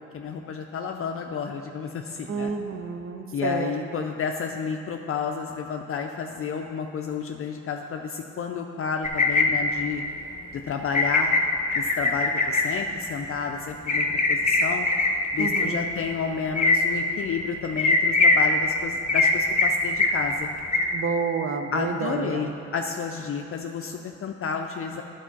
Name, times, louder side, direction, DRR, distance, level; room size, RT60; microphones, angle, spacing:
voice 1, 0.1-2.5 3.3-10.0 10.5-11.3 11.7-14.9 15.3-20.5 21.7-25.0, left 6 dB, 45° left, 3 dB, 0.5 m, -31 dB
voice 2, 2.3-4.1 15.4-15.9 20.9-22.6, right 5 dB, 45° right, 7 dB, 0.7 m, -30 dB
sound 1, 9.0-9.4 10.9-11.4 11.7-12.6 13.9-15.1 15.4-15.6 16.6-16.8 17.8-18.4 19.1-19.3 19.6-19.7 20.0-20.1 20.7-20.8, left 3 dB, 25° left, 0.9 m, -20 dB
10.0 x 4.7 x 5.8 m, 2.8 s
cardioid pair, 90°, 30 cm